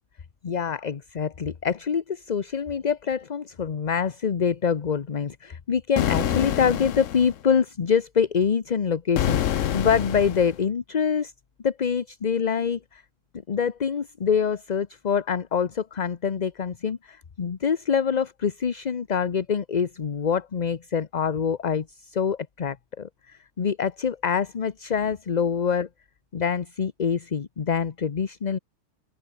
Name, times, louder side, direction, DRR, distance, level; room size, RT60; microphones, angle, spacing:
voice 1, 0.4-11.3 11.6-13.0 13.5-25.9 26.3-28.6, left 6 dB, 40° left, 0.9 m, -25 dB
sound 1, 6.0-7.4 9.2-10.6, left 10 dB, 85° left, 1.2 m, -26 dB
open air
omnidirectional pair, 1.3 m